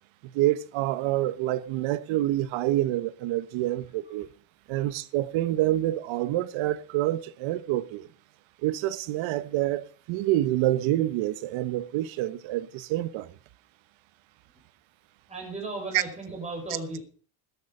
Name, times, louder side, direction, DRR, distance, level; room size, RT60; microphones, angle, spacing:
voice 1, 0.3-4.3 4.7-8.1 8.6-13.3 15.9-16.0, right 15 dB, 70° right, 1.2 m, -27 dB
voice 2, 15.3-17.0, right 3 dB, 15° right, 6.4 m, -35 dB
14.0 x 11.5 x 5.0 m
cardioid pair, 130°, 48 cm